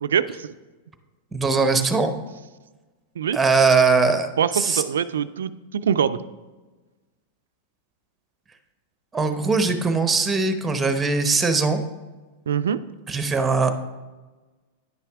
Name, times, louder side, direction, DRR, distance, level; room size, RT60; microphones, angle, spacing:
voice 1, 0.0-0.5 3.2-3.4 4.4-6.2 12.5-12.8, right 8 dB, 90° right, 14 dB, 0.3 m, -24 dB
voice 2, 1.3-2.1 3.3-4.3 4.5-4.8 9.1-11.8 13.1-13.7, right 4 dB, 15° right, 8 dB, 0.8 m, -20 dB
10.0 x 5.7 x 3.5 m, 1.2 s
hypercardioid pair, 120°, 0 cm